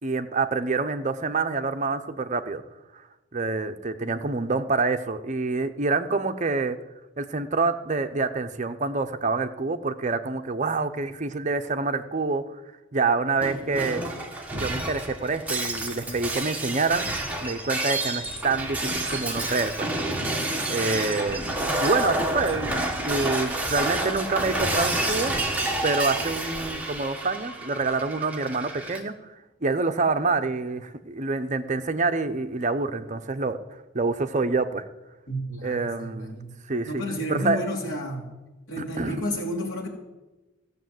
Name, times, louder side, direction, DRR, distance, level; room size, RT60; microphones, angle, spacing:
voice 1, 0.0-2.6 2.9-3.0 3.3-6.8 7.2-12.6 12.9-14.0 14.6-17.1 17.4-19.9 20.7-25.3 25.8-29.1 29.6-33.6 33.9-34.8 35.6-36.4 36.7-37.0 37.3-37.6 38.8-39.2, right 3 dB, 35° right, 8 dB, 0.7 m, -27 dB
Shatter, 13.4-29.0, right 2 dB, 5° right, 1.5 m, -29 dB
voice 2, 35.3-36.5 36.9-38.2 38.7-39.9, equal, 70° left, -1 dB, 3.5 m, -31 dB
15.5 x 7.3 x 7.8 m, 1.1 s
head